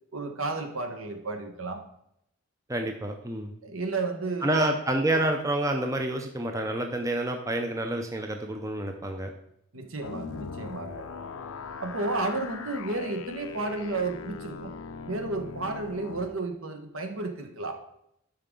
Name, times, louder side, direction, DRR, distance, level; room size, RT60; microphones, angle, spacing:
voice 1, 0.1-1.8 3.6-4.7 5.1-5.2 9.7-11.0 11.8-14.7 15.0-17.8, right 3 dB, 75° right, 5 dB, 1.2 m, -32 dB
voice 2, 2.7-3.5 4.4-9.3, right 1 dB, 15° right, 4 dB, 0.5 m, -28 dB
sound 1, 10.0-16.3, left 5 dB, 90° left, 0.7 m, -40 dB
12.5 x 4.9 x 3.8 m, 0.76 s
head